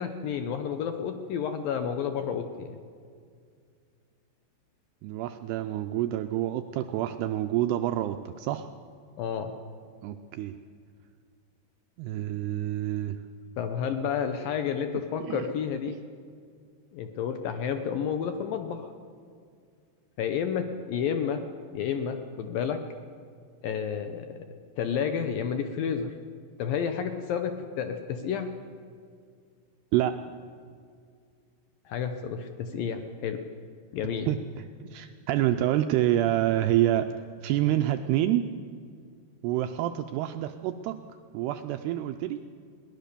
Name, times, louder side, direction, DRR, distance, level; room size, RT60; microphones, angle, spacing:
voice 1, 0.0-2.8 9.2-9.6 13.6-16.0 16.9-18.9 20.2-21.4 21.7-22.8 23.6-24.4 24.8-26.2 26.6-28.5 31.9-33.4 33.9-34.3, left 7 dB, 75° left, 7 dB, 2.1 m, -30 dB
voice 2, 5.0-8.7 10.0-10.6 12.0-13.2 15.2-15.5 29.9-30.2 34.3-34.7 34.9-37.1 37.4-38.4 39.4-41.0 41.3-42.4, right 13 dB, 80° right, 8 dB, 2.5 m, -27 dB
21.0 x 18.5 x 6.8 m, 2.2 s
omnidirectional pair, 5.1 m